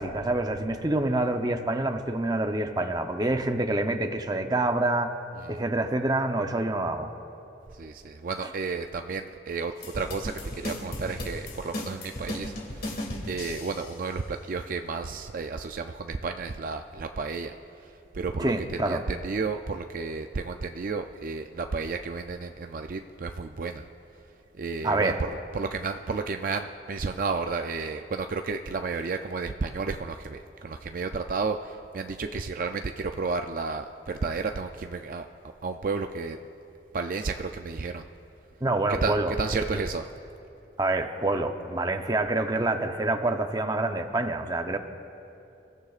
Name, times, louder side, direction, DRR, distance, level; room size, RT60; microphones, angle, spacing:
voice 1, 0.0-5.1 5.5-7.1 18.4-19.0 24.8-25.2 38.6-39.3 40.8-44.8, right 2 dB, 20° right, 6 dB, 0.7 m, -27 dB
voice 2, 7.7-17.5 17.8-23.9 24.5-35.3 35.6-36.4 36.9-38.0 39.0-40.1, right 4 dB, 50° right, 6 dB, 0.4 m, -32 dB
sound 1, 9.8-14.0, left 1 dB, 55° left, 2.3 m, -36 dB
28.0 x 14.5 x 2.5 m, 2.8 s
head